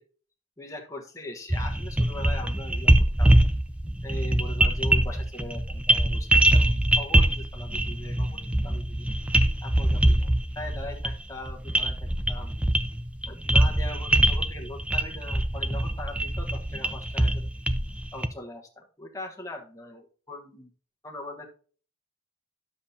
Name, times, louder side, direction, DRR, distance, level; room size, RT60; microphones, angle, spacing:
voice 1, 0.6-2.9 3.2-3.3 4.0-9.1 9.6-12.5 13.3-17.5 18.1-20.7 21.0-21.5, left 1 dB, 15° left, 1 dB, 1.2 m, -41 dB
sound 1, 1.5-18.3, right 1 dB, 5° right, 0.3 m, -23 dB
10.5 x 7.3 x 2.8 m, 0.42 s
head